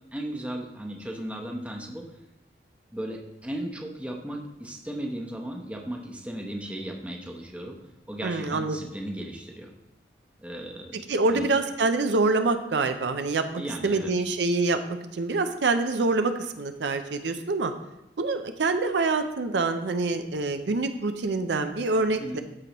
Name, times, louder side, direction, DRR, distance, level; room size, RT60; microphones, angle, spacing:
voice 1, 0.1-2.1 2.9-7.8 8.1-9.7 10.4-11.5 13.6-14.1 22.2-22.4, right 1 dB, 5° right, 0 dB, 0.8 m, -36 dB
voice 2, 8.2-8.8 10.9-17.7 18.2-22.4, right 3 dB, 75° right, 8 dB, 0.5 m, -26 dB
13.5 x 4.6 x 3.0 m, 0.92 s
head